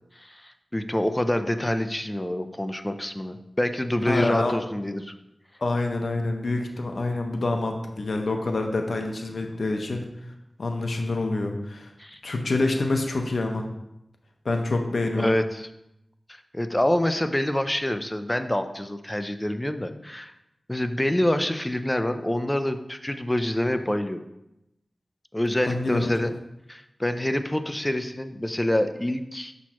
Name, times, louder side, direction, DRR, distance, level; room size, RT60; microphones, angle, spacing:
voice 1, 0.2-5.1 12.0-12.2 15.1-15.7 16.3-20.3 20.7-24.2 25.3-26.3 26.7-29.5, left 1 dB, 15° left, 9 dB, 0.5 m, -26 dB
voice 2, 4.1-4.6 5.6-10.1 10.6-11.9 12.2-13.7 14.4-15.3 25.6-26.3, left 2 dB, 70° left, 3 dB, 0.8 m, -27 dB
6.2 x 5.8 x 3.0 m, 0.87 s
cardioid pair, 50°, 0 cm